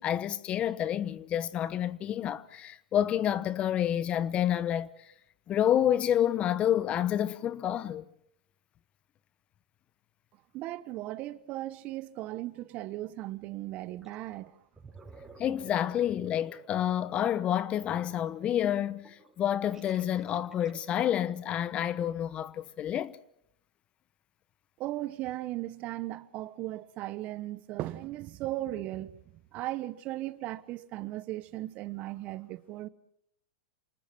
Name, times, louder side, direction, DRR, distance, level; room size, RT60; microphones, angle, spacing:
voice 1, 0.0-4.9 5.5-8.0 15.4-23.2, left 10 dB, 30° left, 1.0 m, -29 dB
voice 2, 10.5-14.5 24.8-29.1 29.5-32.9, right 16 dB, 40° right, 1.0 m, -37 dB
Gurgling, 14.0-14.3 14.6-21.1, right 3 dB, 10° right, 5.8 m, -53 dB
28.0 x 19.5 x 5.9 m
hypercardioid pair, 110°, 4 cm